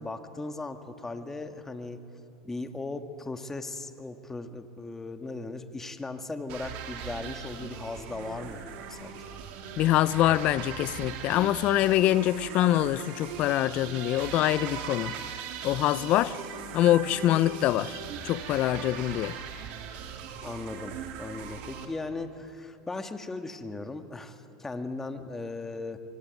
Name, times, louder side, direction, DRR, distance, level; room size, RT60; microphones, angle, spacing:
voice 1, 0.0-2.0 2.4-9.2 20.4-26.0, left 3 dB, 15° left, 2.0 m, -38 dB
sound 1, 6.5-21.9, right 7 dB, 55° right, 3.8 m, -40 dB
voice 2, 9.8-15.1 15.6-16.4 16.7-18.0 18.2-19.3, left 14 dB, 50° left, 0.9 m, -24 dB
25.0 x 24.0 x 9.5 m
hypercardioid pair, 105°, 3 cm